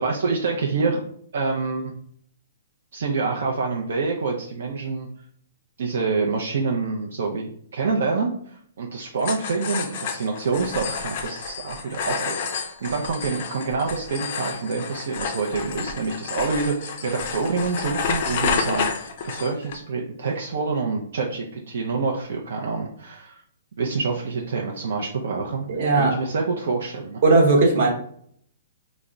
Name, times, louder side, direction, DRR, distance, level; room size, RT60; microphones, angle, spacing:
voice 1, 0.0-1.0 1.3-1.9 2.9-5.1 5.8-23.4 23.8-25.7 25.9-27.2, right 4 dB, 60° right, 0 dB, 0.5 m, -27 dB
sound 1, 9.2-19.8, left 6 dB, 35° left, 0.4 m, -30 dB
voice 2, 25.7-26.2 27.2-27.9, right 3 dB, 35° right, 0 dB, 0.9 m, -17 dB
3.4 x 2.1 x 3.7 m, 0.63 s
hypercardioid pair, 175°, 0 cm